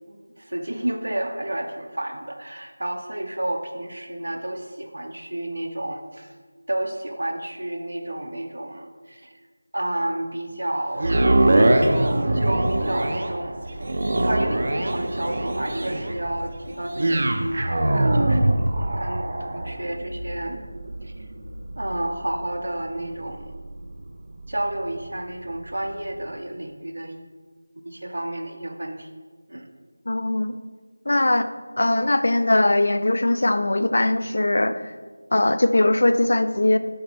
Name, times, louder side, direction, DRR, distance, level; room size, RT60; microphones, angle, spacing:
voice 1, 0.1-6.3 6.7-9.3 9.7-11.2 12.3-13.8 14.2-20.6 21.0-21.1 21.8-23.5 24.5-27.2 27.8-29.1 29.5-29.7, right 1 dB, 80° right, 5 dB, 0.8 m, -31 dB
sound 1, 11.0-25.2 25.7-25.8, right 1 dB, 40° right, 0.5 m, -24 dB
voice 2, 30.1-30.5 31.1-31.5 31.8-34.8 35.3-36.8, left 1 dB, 55° left, 11 dB, 0.3 m, -20 dB
6.6 x 4.2 x 4.2 m, 1.5 s
figure-of-eight pair, 175°, 0 cm